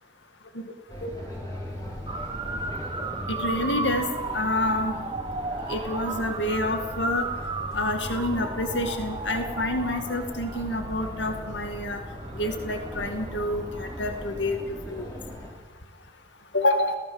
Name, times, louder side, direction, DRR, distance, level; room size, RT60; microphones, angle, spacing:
sound 1, 0.9-15.5, equal, 20° left, 4.7 m, -39 dB
Motor vehicle (road) / Siren, 2.1-14.3, right 3 dB, 25° right, 1.5 m, -35 dB
voice 1, 3.3-4.1 4.3-5.0 5.7-7.3 7.7-12.0 12.3-14.6 14.9-15.1 16.5-17.0, left 1 dB, 65° left, 6 dB, 2.1 m, -27 dB
29.5 x 18.0 x 7.2 m, 1.3 s
head